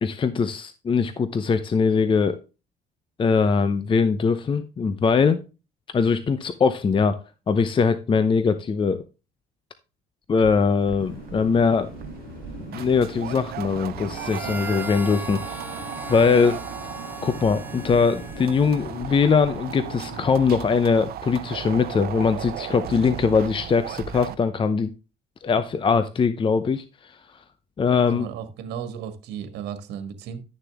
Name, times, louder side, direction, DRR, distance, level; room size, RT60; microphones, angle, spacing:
voice 1, 0.0-2.4 3.2-5.4 5.9-7.2 7.5-9.0 10.3-11.9 12.7-16.6 17.2-24.9 25.4-27.2 27.8-28.3, left 5 dB, 30° left, 12 dB, 0.8 m, -21 dB
sound 1, 10.4-24.3, right 11 dB, 65° right, 0.7 m, -36 dB
sound 2, 11.0-20.4, left 1 dB, 55° left, 3.4 m, -41 dB
Harmonica, 14.1-19.1, right 1 dB, 10° right, 1.1 m, -39 dB
voice 2, 28.1-30.4, right 8 dB, 80° right, 9 dB, 1.6 m, -34 dB
11.5 x 6.8 x 3.5 m, 0.31 s
cardioid pair, 110°, 17 cm